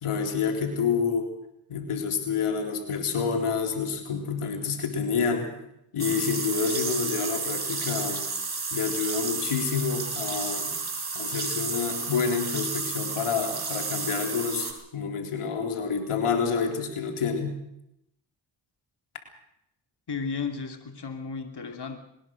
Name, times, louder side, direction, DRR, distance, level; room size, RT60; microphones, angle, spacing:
voice 1, 0.0-1.3 1.7-5.5 5.9-8.2 8.7-10.7 11.1-17.5, left 5 dB, 90° left, 4 dB, 3.8 m, -28 dB
sound 1, 6.0-14.7, right 4 dB, 50° right, 5.8 m, -32 dB
voice 2, 20.1-22.0, left 5 dB, 50° left, 5 dB, 2.9 m, -34 dB
22.5 x 20.0 x 6.5 m, 0.82 s
cardioid pair, 40°, 49 cm